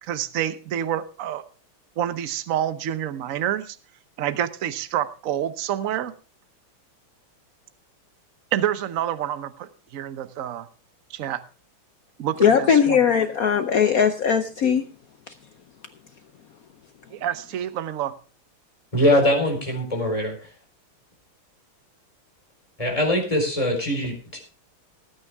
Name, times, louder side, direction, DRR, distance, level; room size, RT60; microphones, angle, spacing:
voice 1, 0.0-1.4 2.0-3.8 4.2-6.1 8.5-10.7 11.1-11.4 12.2-13.0 17.1-18.1, right 11 dB, 55° right, 0.9 m, -28 dB
voice 2, 12.4-14.8, left 7 dB, 70° left, 0.8 m, -19 dB
voice 3, 18.9-20.4 22.8-24.4, left 1 dB, 15° left, 4.4 m, -22 dB
19.0 x 9.1 x 3.5 m
omnidirectional pair, 2.3 m